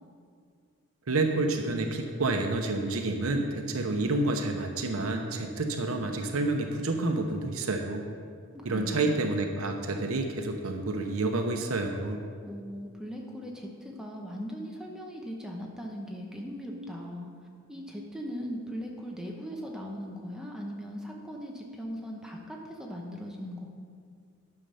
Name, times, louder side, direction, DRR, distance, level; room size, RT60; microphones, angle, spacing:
voice 1, 1.1-8.1 8.6-12.2, right 2 dB, 75° right, 4 dB, 0.8 m, -29 dB
voice 2, 8.7-9.2 12.4-17.3 17.7-23.6, equal, 5° right, -1 dB, 1.0 m, -39 dB
10.5 x 6.5 x 5.6 m, 2.1 s
head